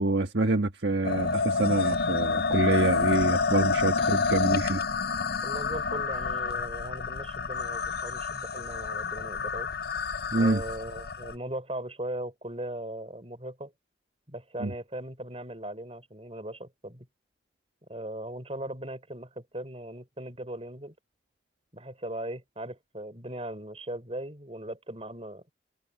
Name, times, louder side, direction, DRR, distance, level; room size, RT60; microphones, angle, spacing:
voice 1, 0.0-4.8 10.3-10.6 14.6-14.7, right 2 dB, 65° right, 1.4 m, -26 dB
sound 1, 1.0-11.3, left 4 dB, 55° left, 0.6 m, -28 dB
voice 2, 5.4-9.7 10.4-13.7 14.3-17.1 17.9-20.9 21.7-25.4, right 1 dB, 30° right, 4.5 m, -38 dB
head